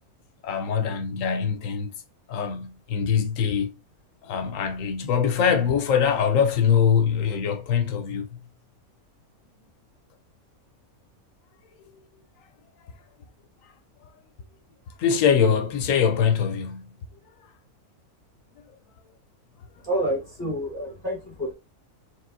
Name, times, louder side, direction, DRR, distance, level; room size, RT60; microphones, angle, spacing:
voice 1, 0.4-1.9 2.3-3.7 4.2-8.4 15.0-16.8, left 7 dB, 70° left, 0.9 m, -23 dB
voice 2, 19.8-21.5, equal, 15° left, 0.9 m, -28 dB
4.7 x 3.4 x 2.5 m
omnidirectional pair, 1.6 m